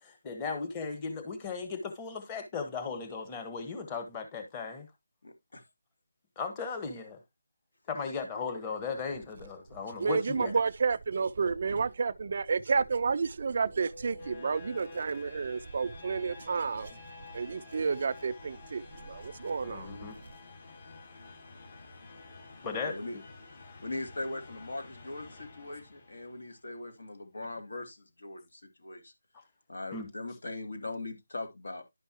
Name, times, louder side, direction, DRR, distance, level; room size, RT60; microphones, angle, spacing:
voice 1, 0.0-4.9 6.4-7.2 7.9-10.5 19.6-20.2 22.6-23.0 29.9-30.1, left 5 dB, 20° left, 1.4 m, -36 dB
voice 2, 5.2-5.6 22.8-23.2 23.8-29.1 29.7-31.8, left 2 dB, 75° left, 2.7 m, -40 dB
voice 3, 10.0-16.9 17.3-19.9, right 5 dB, 50° right, 0.4 m, -30 dB
sound 1, 13.5-26.5, left 3 dB, 45° left, 3.2 m, -50 dB
11.0 x 5.4 x 2.9 m
figure-of-eight pair, 165°, 0 cm